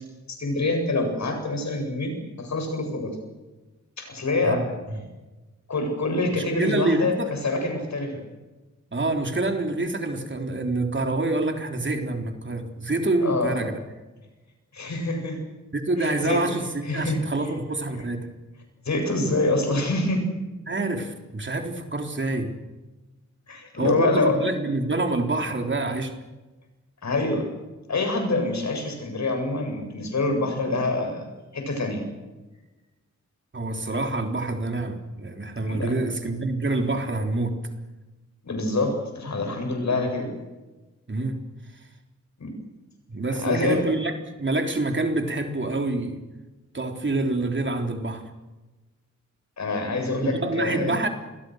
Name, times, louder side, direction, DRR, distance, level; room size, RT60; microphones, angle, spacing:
voice 1, 0.3-3.1 4.0-4.7 5.7-8.2 13.2-13.6 14.7-15.4 16.0-16.4 16.8-17.5 18.8-20.2 23.5-24.4 27.0-27.4 27.9-31.2 31.5-32.0 35.7-35.9 38.4-40.3 42.4-42.5 43.3-43.8 49.6-51.0, left 2 dB, 70° left, 4 dB, 8.0 m, -26 dB
voice 2, 4.4-5.0 6.3-7.3 8.9-13.8 15.7-18.3 20.7-22.5 23.8-26.1 33.5-37.6 41.1-41.4 43.1-44.1 44.4-46.2 46.7-48.2 50.1-51.1, right 2 dB, 40° right, 4 dB, 3.8 m, -26 dB
28.0 x 22.5 x 6.6 m, 1.1 s
wide cardioid pair, 90°, 29 cm